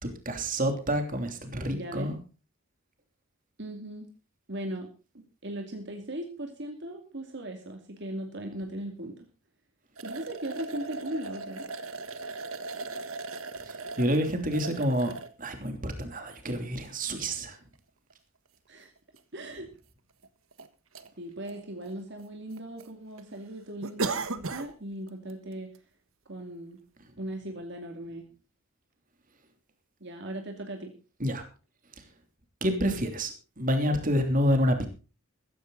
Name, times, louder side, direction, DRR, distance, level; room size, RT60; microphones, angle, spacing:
voice 1, 0.0-2.2 13.6-15.1 15.4-17.6 31.2-31.4 32.0-32.1 32.6-34.9, equal, 40° right, 6 dB, 3.0 m, -28 dB
voice 2, 1.7-2.1 3.6-4.1 4.5-4.9 5.1-9.3 10.0-11.7 18.7-18.9 19.3-19.7 21.2-25.7 26.3-26.8 27.2-28.2 30.0-30.9, right 1 dB, 55° right, 4 dB, 2.5 m, -38 dB
sound 1, 10.0-15.3 16.0-16.1 17.7-17.8 18.1-18.2 19.2-19.3 19.5-19.6 20.2-20.7 20.9-21.1 21.5-22.2 22.5-22.9 23.2-23.3 23.8-24.7 25.1-25.3 25.7-25.8, right 3 dB, 75° right, 1.5 m, -37 dB
15.0 x 15.0 x 3.9 m, 0.35 s
head